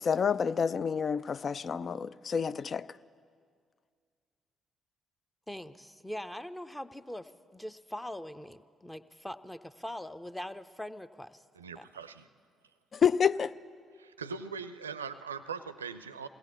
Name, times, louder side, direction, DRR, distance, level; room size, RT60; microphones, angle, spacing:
voice 1, 0.0-2.9 12.9-13.5, left 7 dB, 45° left, 0.4 m, -28 dB
voice 2, 5.5-11.4 11.8-11.9, left 1 dB, 10° left, 0.8 m, -42 dB
voice 3, 11.5-12.3 14.0-16.3, right 5 dB, 80° right, 0.5 m, -41 dB
21.5 x 18.0 x 7.1 m
figure-of-eight pair, 40°, 0 cm